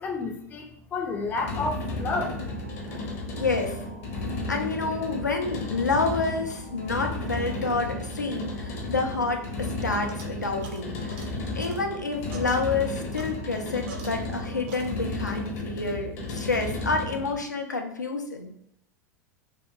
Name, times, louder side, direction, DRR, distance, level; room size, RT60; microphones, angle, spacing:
voice 1, 0.0-2.4 3.0-3.1, left 3 dB, 20° left, 2 dB, 0.4 m, -31 dB
sound 1, 1.1-14.8, right 1 dB, 70° right, 0.9 m, -49 dB
sound 2, 1.3-17.4, left 2 dB, 55° left, 0.7 m, -34 dB
voice 2, 3.4-3.8 4.5-11.3 11.5-18.5, left 3 dB, 85° left, 4 dB, 0.4 m, -29 dB
sound 3, 9.2-14.4 14.7-15.3, right 3 dB, 45° right, 0.5 m, -46 dB
2.7 x 2.5 x 2.2 m, 0.72 s
figure-of-eight pair, 85°, 9 cm